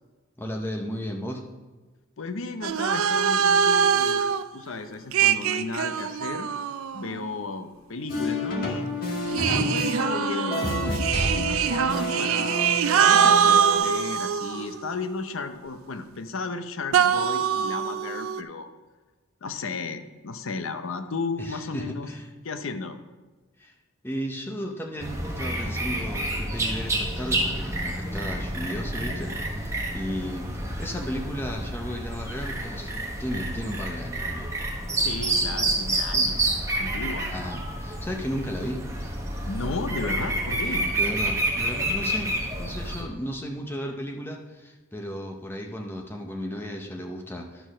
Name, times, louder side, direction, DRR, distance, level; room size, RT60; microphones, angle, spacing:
voice 1, 0.4-1.4 21.4-22.3 23.6-23.8 24.0-32.9 33.2-34.5 37.3-38.9 41.0-42.3 42.6-47.7, equal, 10° left, 1 dB, 0.6 m, -34 dB
voice 2, 2.2-6.5 6.9-8.9 9.3-12.7 12.9-18.7 19.4-22.1 22.4-23.0 35.0-36.4 36.8-37.3 39.4-40.9, left 3 dB, 70° left, 9 dB, 0.7 m, -34 dB
sound 1, 2.6-4.4 5.1-7.3 9.3-14.9 16.9-18.4, right 7 dB, 75° right, 0.4 m, -23 dB
sound 2, 8.1-13.8, left 1 dB, 40° left, 1.6 m, -29 dB
sound 3, 25.0-43.0, right 1 dB, 15° right, 1.3 m, -29 dB
11.0 x 4.4 x 6.0 m, 1.3 s
head